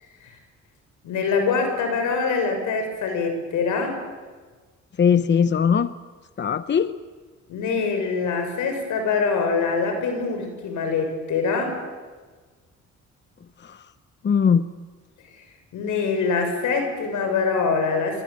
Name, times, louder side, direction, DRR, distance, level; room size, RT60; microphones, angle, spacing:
voice 1, 1.0-4.0 7.5-11.8 15.7-18.2, left 4 dB, 80° left, 5 dB, 6.6 m, -24 dB
voice 2, 5.0-5.9 6.4-6.9 13.6-13.8 14.2-14.6, left 7 dB, 35° left, 13 dB, 0.9 m, -20 dB
26.5 x 24.0 x 8.9 m, 1.4 s
cardioid pair, 90°, 30 cm